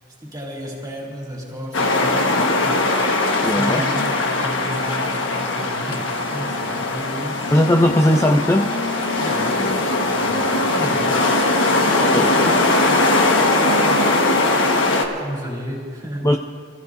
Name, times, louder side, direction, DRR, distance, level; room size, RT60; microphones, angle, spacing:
voice 1, 0.2-3.1 3.4-7.5 9.2-11.3 11.9-14.6 15.2-16.4, equal, 20° right, -3 dB, 3.3 m, -32 dB
sound 1, 1.7-15.0, left 2 dB, 85° left, 1.4 m, -20 dB
voice 2, 3.4-3.8 7.5-8.7 12.1-12.3 16.2-16.4, left 1 dB, 15° left, 3 dB, 0.4 m, -17 dB
27.0 x 14.5 x 2.6 m, 2.1 s
head